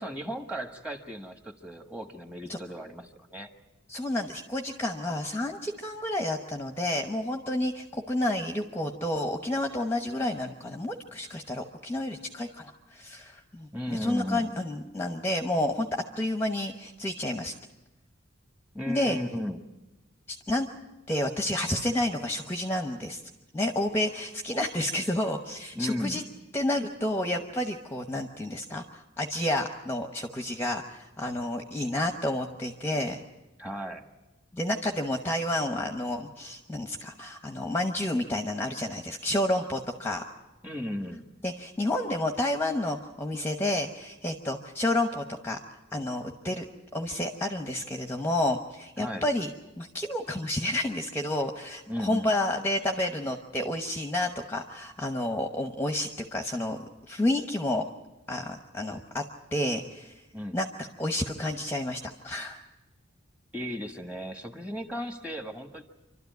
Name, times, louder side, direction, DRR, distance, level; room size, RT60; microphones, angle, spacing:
voice 1, 0.0-3.5 13.7-14.5 18.7-19.6 25.7-26.2 33.6-34.0 40.6-41.2 49.0-49.2 51.9-52.3 60.3-60.6 63.5-65.8, equal, 5° right, 5 dB, 1.5 m, -35 dB
voice 2, 3.9-17.5 18.9-19.2 20.3-20.7 21.1-23.2 23.5-26.2 26.5-33.2 34.5-40.2 41.4-45.6 45.9-46.6 46.9-49.5 49.8-56.8 57.1-57.8 58.3-59.2 59.5-60.1 60.5-60.7 61.0-62.6, left 1 dB, 10° left, 4 dB, 1.0 m, -30 dB
27.5 x 12.5 x 9.4 m, 1.1 s
head